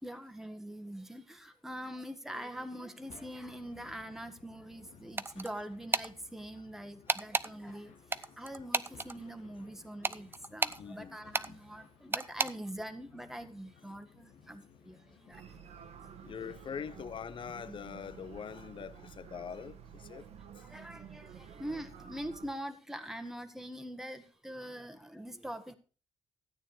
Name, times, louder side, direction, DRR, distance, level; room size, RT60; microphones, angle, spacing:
voice 1, 0.0-15.4 20.6-25.8, right 1 dB, 5° right, 1.5 m, -44 dB
sound 1, 2.5-18.9, left 6 dB, 85° left, 2.0 m, -60 dB
sound 2, 5.2-5.5 5.9-6.1 7.1-7.5 8.1-9.1 10.0-10.8 11.3-11.5 12.1-12.5, right 3 dB, 20° right, 0.6 m, -31 dB
voice 2, 10.8-11.6 16.2-20.3 20.5-20.6, left 7 dB, 45° left, 0.7 m, -43 dB
sound 3, 15.3-22.5, right 8 dB, 75° right, 1.4 m, -51 dB
13.0 x 9.0 x 4.7 m
cardioid pair, 95°, 11 cm